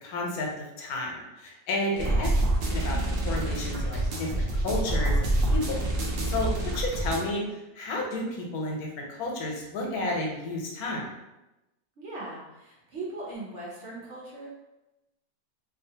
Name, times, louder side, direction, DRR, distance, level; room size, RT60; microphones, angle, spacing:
voice 1, 0.0-2.3 2.7-3.0 3.2-5.8 6.2-11.1, left 2 dB, 80° left, 0 dB, 1.1 m, -32 dB
voice 2, 2.0-2.3 12.0-14.5, right 2 dB, 60° right, -5 dB, 0.9 m, -39 dB
sound 1, 2.0-7.2, right 1 dB, 80° right, 0.5 m, -27 dB
2.6 x 2.3 x 2.7 m, 0.98 s
omnidirectional pair, 1.6 m